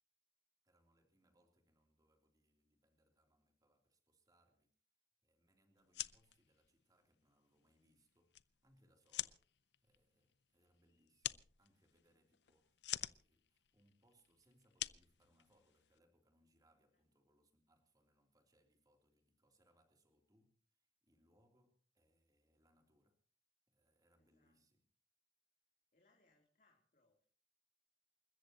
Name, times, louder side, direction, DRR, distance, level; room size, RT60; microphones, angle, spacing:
voice 1, 0.6-4.7 5.2-9.4 9.8-23.2 23.7-24.9, right 1 dB, 20° right, 3 dB, 3.4 m, -77 dB
sound 1, 5.8-16.0, left 13 dB, 75° left, 0.6 m, -49 dB
voice 2, 24.1-24.6 25.9-27.3, left 2 dB, 50° left, -1 dB, 3.5 m, -76 dB
28.5 x 14.0 x 3.0 m, 0.43 s
head